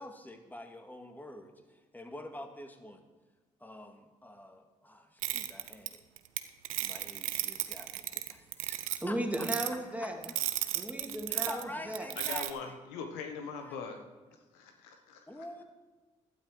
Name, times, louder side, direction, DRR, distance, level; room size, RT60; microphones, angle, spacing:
voice 1, 0.0-3.1 3.6-6.0 6.8-9.5 10.0-10.7 11.3-12.8 13.6-14.0 15.3-15.6, left 1 dB, 10° left, 5 dB, 2.0 m, -47 dB
sound 1, 5.2-6.4 6.6-9.0 9.3-9.7 10.2-11.6 11.9-12.5, right 15 dB, 90° right, 0.5 m, -34 dB
voice 2, 9.0-10.2 10.7-12.1, right 1 dB, 10° right, 2 dB, 2.7 m, -35 dB
voice 3, 12.2-14.0 14.5-15.4, left 5 dB, 80° left, 5 dB, 1.2 m, -41 dB
12.0 x 11.5 x 4.8 m, 1.3 s
hypercardioid pair, 45°, 17 cm